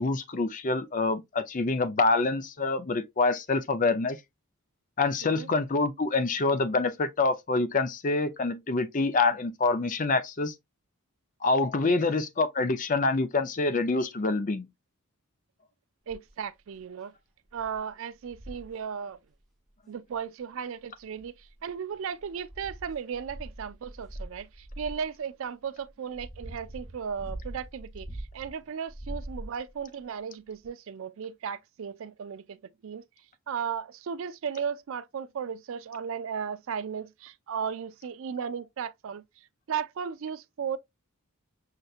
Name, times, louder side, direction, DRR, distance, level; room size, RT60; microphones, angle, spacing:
voice 1, 0.0-4.2 5.0-10.5 11.4-14.7, left 3 dB, 35° left, 0.5 m, -26 dB
sound 1, 16.1-16.4 17.0-17.1 17.5-17.8 18.3-18.7 20.1-20.2 21.0-21.7 22.2-25.0 25.8-28.5 28.9-29.8 30.6-30.7, right 1 dB, ahead, 0.8 m, -42 dB
voice 2, 16.1-17.1 17.5-19.2 19.9-28.1 28.3-32.6 32.8-33.0 33.5-39.2 39.7-40.8, right 7 dB, 60° right, 0.4 m, -35 dB
6.5 x 2.9 x 2.4 m
head